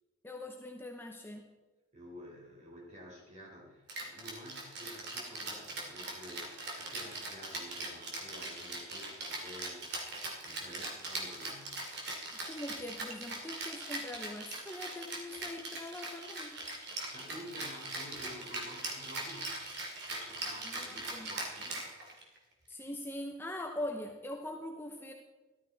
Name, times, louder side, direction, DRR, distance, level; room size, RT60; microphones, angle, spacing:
voice 1, 0.2-1.5 12.5-16.6 20.6-21.3 22.7-25.1, left 1 dB, 10° left, 3 dB, 0.7 m, -42 dB
voice 2, 1.9-10.0 10.4-11.9 17.1-21.8, equal, 35° right, -3 dB, 3.9 m, -51 dB
Rattle (instrument), 3.9-22.4, right 2 dB, 50° right, 2.4 m, -41 dB
14.0 x 12.5 x 3.9 m, 1.2 s
head